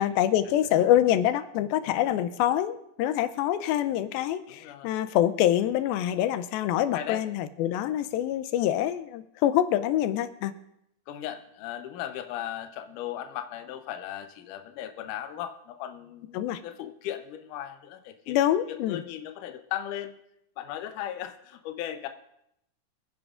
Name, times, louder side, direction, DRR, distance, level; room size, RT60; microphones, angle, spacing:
voice 1, 0.0-10.5 16.3-16.6 18.3-19.0, left 12 dB, 90° left, 12 dB, 2.5 m, -25 dB
voice 2, 4.6-4.9 6.9-7.2 11.1-18.4 18.7-20.1 20.6-22.1, left 11 dB, 70° left, 7 dB, 2.1 m, -37 dB
25.0 x 10.5 x 2.5 m, 0.79 s
omnidirectional pair, 4.2 m